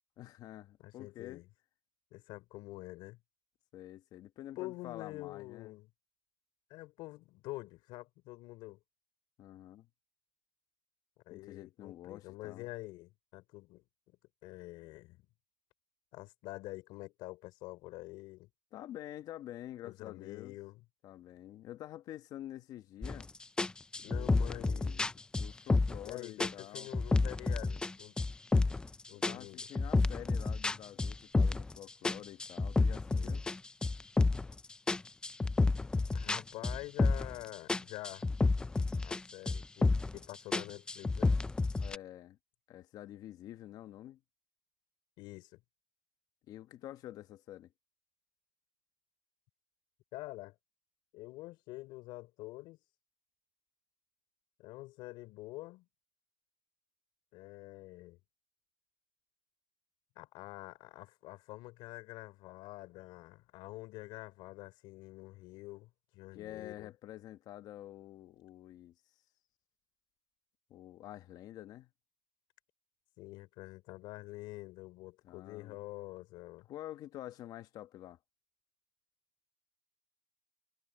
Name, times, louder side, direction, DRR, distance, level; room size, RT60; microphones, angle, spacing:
voice 1, 0.2-1.4 3.7-5.7 9.4-9.9 11.3-12.7 18.7-20.6 21.0-23.3 24.0-25.1 25.3-26.9 29.1-33.4 41.8-42.4 42.7-44.2 46.5-47.7 66.3-68.9 70.7-71.9 75.2-75.8 76.7-78.2, left 13 dB, 45° left, 1.3 m, -48 dB
voice 2, 0.8-1.5 2.1-3.2 4.6-5.9 6.7-8.8 11.3-15.2 16.1-18.5 19.8-20.8 24.0-25.0 26.0-28.2 29.1-29.7 33.1-33.4 36.1-38.3 39.0-41.4 45.2-45.6 50.1-50.5 51.1-52.8 54.6-55.9 57.3-58.2 60.2-66.9 73.2-76.7, left 20 dB, 60° left, 4.6 m, -47 dB
sound 1, 23.0-23.2 23.6-26.1 26.4-27.9 28.2-28.9 29.2-31.7 32.0-34.5 34.9-37.4 37.7-39.2 39.5-40.2 40.5-42.0, left 3 dB, 10° left, 0.4 m, -30 dB
cardioid pair, 140°, 9 cm